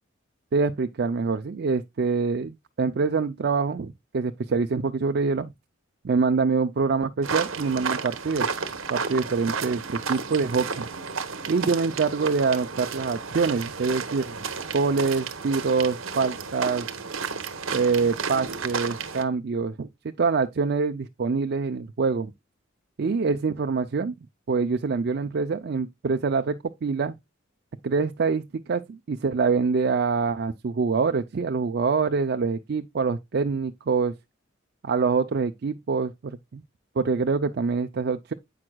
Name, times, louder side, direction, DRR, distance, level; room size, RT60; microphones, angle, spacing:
voice 1, 0.5-5.5 6.0-8.5 8.9-10.9 11.5-14.3 14.7-16.9 17.7-22.3 23.0-24.1 24.5-27.1 27.8-34.1 34.8-36.6 37.0-38.3, right 4 dB, 55° right, 0.4 m, -25 dB
sound 1, 7.2-19.2, right 5 dB, 90° right, 1.0 m, -32 dB
8.7 x 6.1 x 2.3 m
head